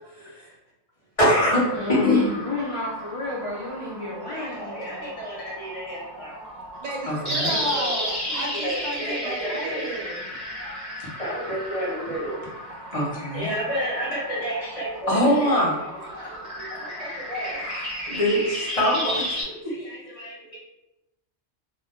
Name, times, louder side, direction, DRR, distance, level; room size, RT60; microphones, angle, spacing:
voice 1, 0.2-0.5 6.8-10.3, right 1 dB, 45° right, -1 dB, 0.6 m, -33 dB
voice 2, 1.2-2.4 4.3-6.4 7.0-7.9 8.6-9.8 10.5-10.7 11.2-12.4 12.9-20.6, equal, 30° left, -6 dB, 0.9 m, -26 dB
sound 1, 1.6-19.4, equal, 15° right, 1.0 m, -34 dB
voice 3, 1.7-5.1, left 2 dB, 55° left, -7 dB, 0.3 m, -32 dB
2.6 x 2.2 x 3.5 m, 0.92 s
omnidirectional pair, 1.3 m